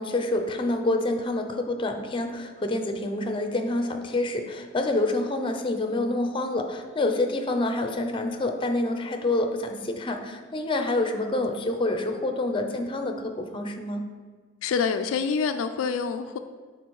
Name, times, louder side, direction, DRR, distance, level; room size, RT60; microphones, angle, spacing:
voice 1, 0.0-14.0, left 2 dB, 25° left, 6 dB, 0.6 m, -27 dB
voice 2, 14.6-16.4, left 5 dB, 80° left, 8 dB, 0.3 m, -26 dB
6.8 x 3.9 x 4.6 m, 1.4 s
head